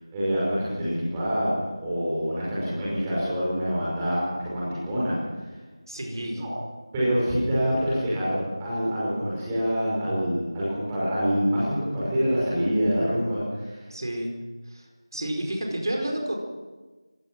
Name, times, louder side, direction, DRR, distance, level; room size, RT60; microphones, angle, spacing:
voice 1, 0.1-1.5 1.8-5.2 6.2-6.5 6.9-13.8, equal, 10° right, -8 dB, 5.4 m, -26 dB
voice 2, 5.9-6.4 13.9-14.3 14.7-14.8 15.1-16.3, right 1 dB, 50° right, 2 dB, 4.9 m, -30 dB
26.0 x 16.5 x 6.2 m, 1.3 s
figure-of-eight pair, 175°, 3 cm